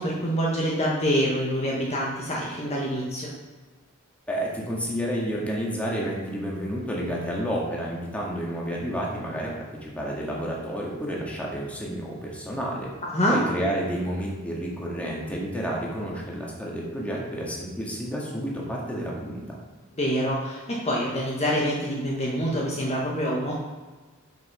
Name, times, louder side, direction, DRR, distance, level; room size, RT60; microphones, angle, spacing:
voice 1, 0.0-3.3 13.0-13.4 20.0-23.6, equal, 30° left, -4 dB, 1.4 m, -26 dB
voice 2, 4.3-9.5 9.8-12.9 13.3-19.6, equal, 5° left, -4 dB, 1.9 m, -30 dB
7.5 x 5.8 x 5.7 m, 1.3 s
head